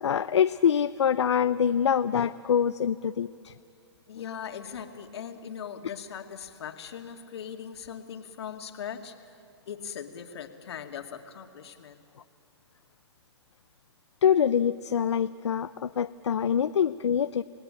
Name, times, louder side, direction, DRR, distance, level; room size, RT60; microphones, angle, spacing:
voice 1, 0.0-3.5 14.2-17.4, left 8 dB, 85° left, 12 dB, 0.6 m, -25 dB
voice 2, 4.1-9.1 9.7-12.0, left 8 dB, 65° left, 5 dB, 2.3 m, -40 dB
29.0 x 18.5 x 8.9 m, 2.4 s
hypercardioid pair, 135°, 14 cm